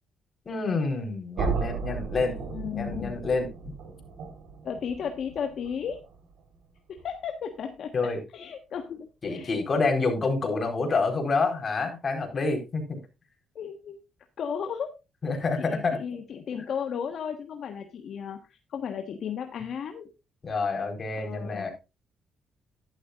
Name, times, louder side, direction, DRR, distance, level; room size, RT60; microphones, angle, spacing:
voice 1, 0.5-2.3 2.8-3.5 7.9-8.2 9.2-13.0 15.2-16.0 20.4-21.7, left 3 dB, 40° left, 4 dB, 4.1 m, -27 dB
sound 1, 1.3-7.2, right 5 dB, 80° right, 3.9 m, -36 dB
voice 2, 2.2-3.2 4.6-6.0 6.9-9.6 13.5-14.0 14.4-14.9 15.6-20.1 21.1-21.7, left 7 dB, 65° left, 5 dB, 1.4 m, -35 dB
12.0 x 11.5 x 2.5 m, 0.27 s
cardioid pair, 90°, 0 cm